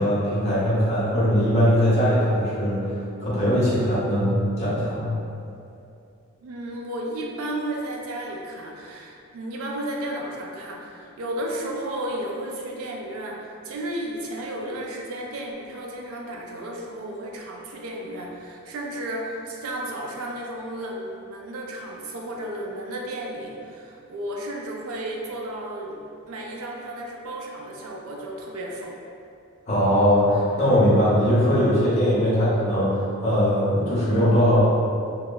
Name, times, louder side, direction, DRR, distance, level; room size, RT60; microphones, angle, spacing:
voice 1, 0.0-2.9 3.2-5.1 29.7-34.6, equal, 30° left, -10 dB, 0.8 m, -20 dB
voice 2, 6.4-26.0 26.3-28.9, right 1 dB, 85° right, -1 dB, 0.4 m, -33 dB
2.9 x 2.1 x 2.2 m, 2.5 s
head